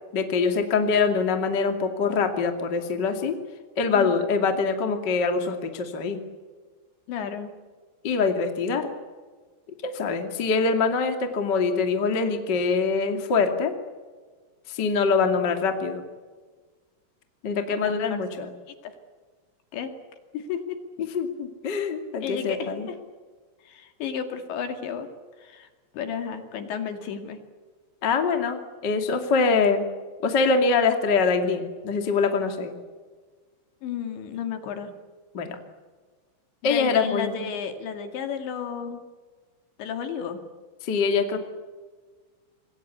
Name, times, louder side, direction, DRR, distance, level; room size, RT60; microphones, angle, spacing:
voice 1, 0.1-3.4 3.8-6.2 8.0-8.9 9.8-13.7 14.7-16.0 17.4-18.5 21.0-22.9 28.0-29.8 30.2-32.7 35.3-35.6 36.6-37.5 40.8-41.4, left 4 dB, 35° left, 5 dB, 1.9 m, -24 dB
voice 2, 7.1-7.5 17.8-17.9 18.8-18.9 19.7-19.9 20.3-20.8 22.1-23.0 23.6-25.1 25.4-25.7 25.9-27.4 33.8-34.9 36.6-39.0 39.8-40.4, left 7 dB, 65° left, 6 dB, 4.2 m, -32 dB
27.0 x 22.0 x 8.4 m, 1.4 s
omnidirectional pair, 5.9 m